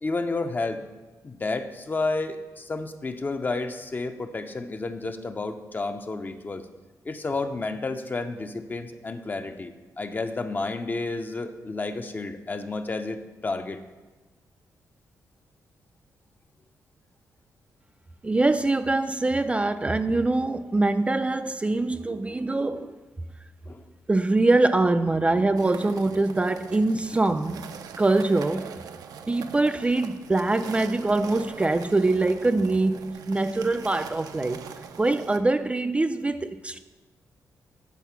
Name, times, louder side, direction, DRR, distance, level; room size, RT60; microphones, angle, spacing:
voice 1, 0.0-0.8 1.2-6.7 7.0-13.8 23.7-23.8, left 3 dB, 30° left, 0.6 m, -31 dB
voice 2, 18.2-22.9 24.1-27.6 28.0-28.7 29.3-34.7 35.0-36.8, right 2 dB, 20° right, 0.3 m, -23 dB
sound 1, 25.6-35.4, right 7 dB, 75° right, 0.5 m, -42 dB
8.2 x 4.1 x 5.8 m
cardioid pair, 85°, 6 cm